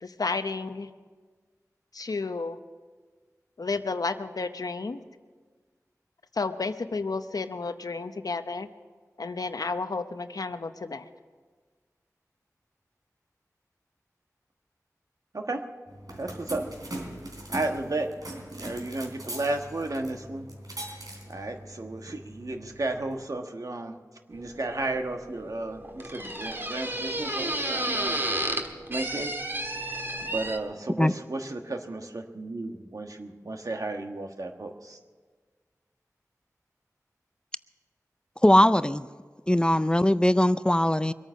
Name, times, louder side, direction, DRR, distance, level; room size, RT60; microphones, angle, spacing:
voice 1, 0.0-0.9 1.9-2.6 3.6-5.0 6.3-8.7 9.2-11.0, left 4 dB, 80° left, 10 dB, 0.7 m, -31 dB
voice 2, 15.3-15.6 16.2-16.7 17.5-18.1 18.5-20.5 21.3-24.0 24.3-28.2 28.9-29.3 30.2-35.0, right 2 dB, 65° right, 4 dB, 1.4 m, -33 dB
sound 1, 15.9-23.3, right 1 dB, 85° right, 3.4 m, -41 dB
sound 2, 24.3-30.6, right 1 dB, 35° right, 1.6 m, -32 dB
voice 3, 38.4-39.1 39.5-41.1, left 1 dB, 15° left, 14 dB, 0.4 m, -20 dB
23.0 x 9.0 x 6.4 m, 1.5 s
wide cardioid pair, 50°, 6 cm